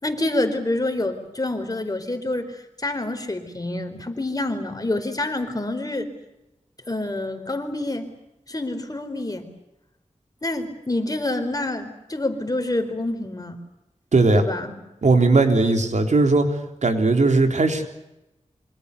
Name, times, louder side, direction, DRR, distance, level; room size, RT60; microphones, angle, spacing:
voice 1, 0.0-6.1 6.9-8.1 8.5-9.5 10.4-13.6 14.3-14.7, left 2 dB, 30° left, 7 dB, 4.5 m, -27 dB
voice 2, 14.1-14.4 15.0-16.5 16.8-17.8, right 3 dB, 75° right, 6 dB, 3.6 m, -18 dB
26.5 x 25.5 x 6.9 m, 0.94 s
wide cardioid pair, 60°, 12 cm